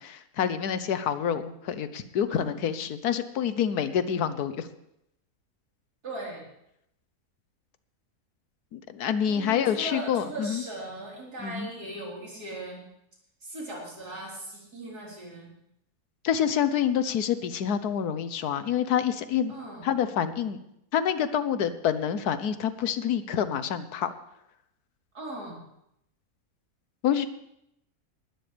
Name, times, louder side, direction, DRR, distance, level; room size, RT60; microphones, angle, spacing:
voice 1, 0.0-4.7 8.7-10.6 11.4-11.7 16.2-19.5 19.8-20.6 20.9-24.1 27.0-27.3, left 8 dB, 85° left, 12 dB, 1.4 m, -27 dB
voice 2, 2.3-2.7 6.0-6.5 9.2-12.8 13.4-15.5 19.5-19.9 25.1-25.6, right 1 dB, 85° right, -4 dB, 4.8 m, -39 dB
19.5 x 12.5 x 3.4 m, 0.79 s
omnidirectional pair, 1.6 m